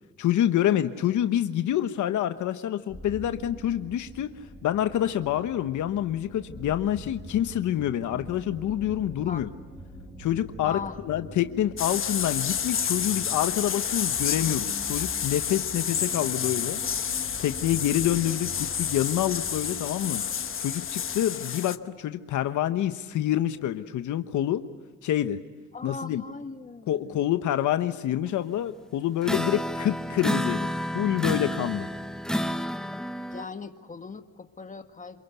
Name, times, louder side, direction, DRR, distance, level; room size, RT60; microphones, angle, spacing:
voice 1, 0.2-4.3 4.6-9.5 10.2-16.8 17.4-18.5 18.8-20.2 20.6-24.6 25.0-25.4 25.8-26.2 26.9-30.7 30.9-31.9, left 11 dB, 75° left, 9 dB, 1.2 m, -27 dB
sound 1, 2.9-21.3, equal, 15° right, 5.6 m, -44 dB
voice 2, 10.6-11.0 25.7-27.4 33.3-35.2, left 4 dB, 25° left, 7 dB, 1.8 m, -39 dB
sound 2, 11.8-21.8, left 8 dB, 45° left, 1.1 m, -30 dB
sound 3, 29.2-33.4, equal, ahead, 0.9 m, -30 dB
28.0 x 22.5 x 8.2 m, 1.5 s
cardioid pair, 90°, 30 cm